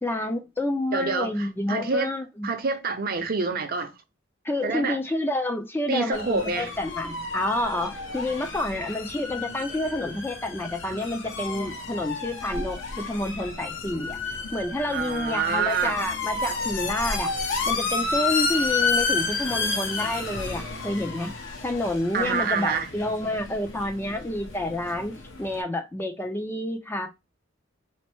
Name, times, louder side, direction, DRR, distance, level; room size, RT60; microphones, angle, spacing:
voice 1, 0.0-2.5 4.4-17.3 17.7-21.3 21.6-27.1, left 1 dB, 10° left, 0.4 m, -29 dB
voice 2, 0.9-2.1 2.4-3.9 4.6-5.0 5.9-6.7 14.9-16.0 22.1-22.9, right 4 dB, 50° right, 0.6 m, -27 dB
sound 1, 6.1-25.6, left 4 dB, 70° left, 0.9 m, -31 dB
4.2 x 2.0 x 2.9 m
head